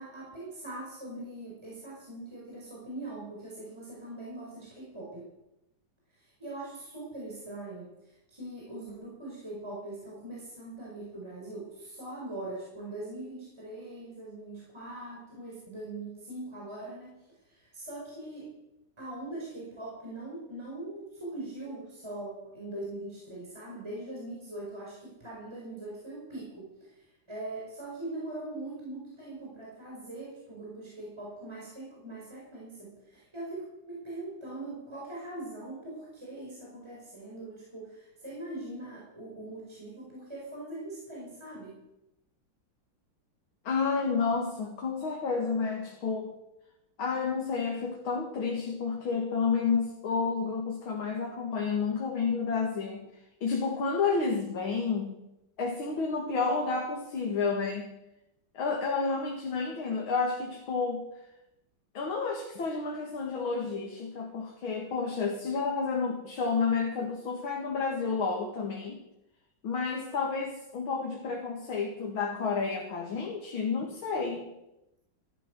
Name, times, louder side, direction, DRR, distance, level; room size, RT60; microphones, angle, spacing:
voice 1, 0.0-5.3 6.1-18.5 19.0-41.8, right 2 dB, 10° right, -5 dB, 5.2 m, -41 dB
voice 2, 43.6-46.3 47.0-53.0 53.4-55.2 55.6-57.9 58.5-61.1 61.9-69.0 69.6-74.4, left 5 dB, 75° left, 0 dB, 2.8 m, -30 dB
15.5 x 12.5 x 6.3 m, 0.88 s
omnidirectional pair, 2.3 m